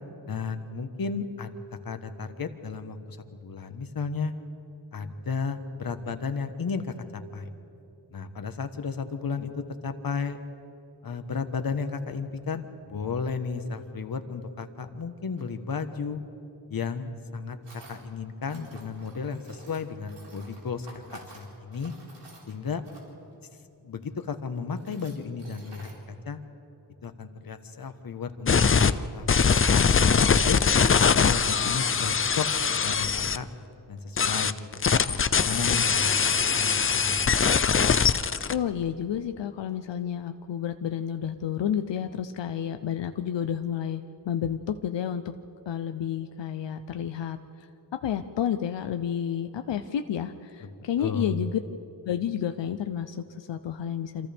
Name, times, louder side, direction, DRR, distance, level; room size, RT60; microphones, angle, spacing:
voice 1, 0.3-1.5 1.8-4.3 4.9-7.5 8.1-10.4 11.0-16.2 16.7-17.6 17.9-20.9 21.1-21.9 22.5-22.8 23.8-26.4 27.0-30.6 31.2-32.5 32.7-33.5 33.9-34.7 35.0-36.1 36.6-37.5 50.6-50.7 51.0-51.4, left 5 dB, 55° left, 8 dB, 1.3 m, -34 dB
Tools, 15.4-15.5 17.6-18.0 18.4-23.3 24.0-24.1 24.6-25.9, right 2 dB, 80° right, 4.8 m, -51 dB
sound 1, 28.5-28.9 29.3-33.4 34.2-38.5, left 6 dB, 30° left, 0.5 m, -22 dB
voice 2, 38.5-45.2 45.7-47.4 48.0-51.6 52.1-54.3, left 9 dB, 85° left, 8 dB, 0.7 m, -30 dB
27.5 x 26.5 x 3.5 m, 3.0 s
wide cardioid pair, 95°, 42 cm